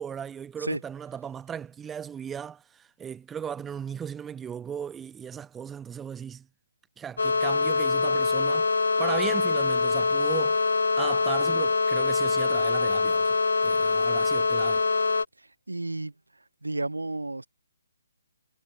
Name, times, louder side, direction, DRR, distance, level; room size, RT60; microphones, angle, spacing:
voice 1, 0.0-6.5 7.0-8.7 9.0-10.6 11.0-13.4 13.6-14.8, right 8 dB, 10° right, 0.4 m, -36 dB
sound 1, 7.2-15.3, left 4 dB, 70° left, 0.6 m, -24 dB
voice 2, 15.7-16.1 16.6-17.5, right 2 dB, 85° right, 1.3 m, -31 dB
figure-of-eight pair, 140°, 0 cm